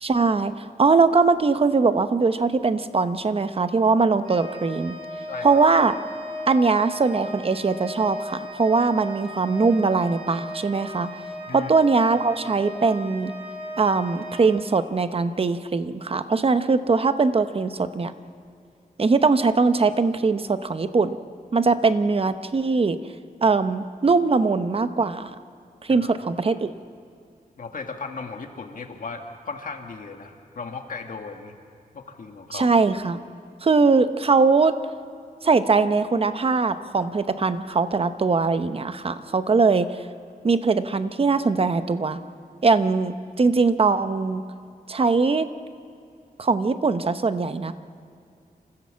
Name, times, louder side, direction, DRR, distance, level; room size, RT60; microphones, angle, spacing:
voice 1, 0.0-5.0 5.4-5.9 6.5-11.1 11.5-13.3 13.8-18.1 19.0-21.2 21.5-23.0 23.4-25.3 25.8-26.7 32.5-33.2 33.6-34.7 35.4-40.0 40.4-42.2 42.6-44.4 44.9-45.5 46.4-47.7, right 4 dB, 35° right, 11 dB, 0.8 m, -21 dB
Organ, 4.2-15.1, left 1 dB, 55° right, 7.1 m, -37 dB
voice 2, 5.3-5.6 11.5-11.7 25.9-26.1 27.6-31.5 31.9-32.7, left 4 dB, 60° left, 4 dB, 1.7 m, -36 dB
27.0 x 15.0 x 7.5 m, 2.4 s
wide cardioid pair, 125°, 16 cm